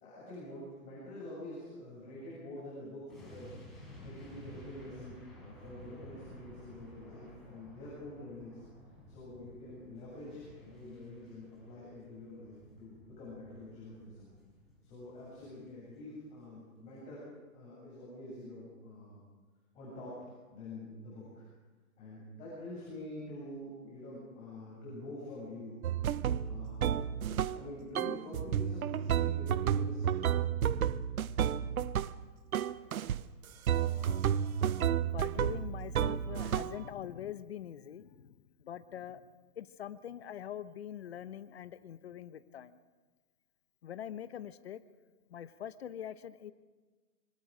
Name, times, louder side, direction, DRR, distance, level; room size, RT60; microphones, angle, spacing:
voice 1, 0.0-3.5 4.0-8.6 9.1-14.3 14.8-17.2 17.5-19.2 19.7-21.4 22.0-25.8 26.4-30.2, left 1 dB, 15° left, -7 dB, 7.3 m, -46 dB
sound 1, 3.1-16.2 16.5-16.7, equal, ahead, 5.4 m, -54 dB
sound 2, 25.8-27.7 28.0-32.2 32.5-33.2 33.7-36.9, right 9 dB, 75° right, 0.9 m, -31 dB
voice 2, 33.7-34.2 35.1-42.8 43.8-44.8 45.3-46.5, left 10 dB, 45° left, 13 dB, 1.1 m, -44 dB
26.5 x 25.0 x 5.1 m, 1.3 s
hypercardioid pair, 170°, 42 cm